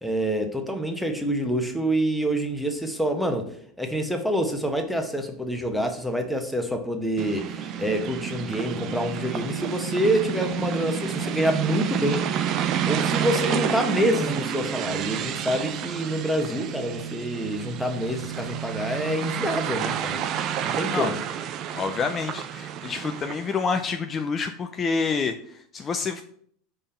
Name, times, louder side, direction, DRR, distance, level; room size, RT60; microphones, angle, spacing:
voice 1, 0.0-3.5 3.8-12.3 12.9-20.2 20.6-21.2, equal, ahead, 4 dB, 1.2 m, -26 dB
sound 1, 7.2-23.6, right 9 dB, 50° right, 0.5 m, -30 dB
voice 2, 21.7-26.2, left 5 dB, 30° left, 7 dB, 0.5 m, -28 dB
5.2 x 3.5 x 5.7 m, 0.63 s
hypercardioid pair, 90°, 0 cm